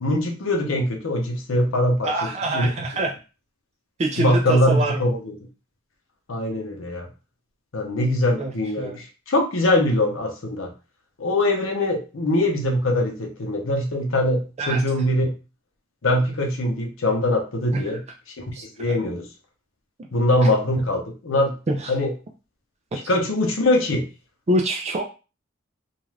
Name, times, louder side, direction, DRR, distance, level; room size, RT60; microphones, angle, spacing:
voice 1, 0.0-2.1 2.5-2.7 4.2-5.2 6.3-7.1 7.7-10.7 11.2-15.4 16.0-18.0 18.4-18.5 18.8-19.2 20.1-21.6 21.9-22.1 23.1-24.1, left 1 dB, 80° left, 2 dB, 0.7 m, -22 dB
voice 2, 2.0-3.1 4.0-5.0 8.4-8.5 8.8-9.0 14.6-14.8 17.7-17.8 18.5-18.9 21.7-21.9 23.0-23.1 24.5-25.1, right 1 dB, 35° right, 1 dB, 0.3 m, -25 dB
2.4 x 2.3 x 3.2 m, 0.31 s
head